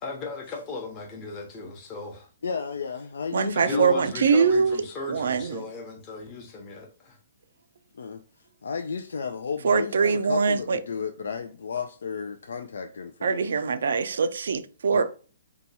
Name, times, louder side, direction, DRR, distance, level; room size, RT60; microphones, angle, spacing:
voice 1, 0.0-2.3 3.5-7.1, left 3 dB, 30° left, 0.8 m, -37 dB
voice 2, 2.4-4.0 7.9-8.2 8.6-13.7 14.9-15.1, left 5 dB, 80° left, 0.3 m, -33 dB
voice 3, 3.3-4.8 5.1-5.6 9.6-10.8 13.2-15.1, right 5 dB, 75° right, 0.4 m, -23 dB
2.8 x 2.3 x 4.0 m
hypercardioid pair, 140°, 0 cm